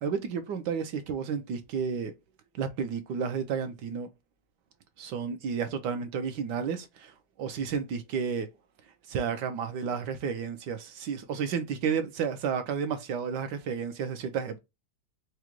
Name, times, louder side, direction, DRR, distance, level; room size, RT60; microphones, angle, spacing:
voice 1, 0.0-2.1 2.6-4.1 5.0-8.5 9.1-14.6, right 6 dB, 70° right, 1.1 m, -32 dB
4.9 x 2.2 x 2.9 m
omnidirectional pair, 2.2 m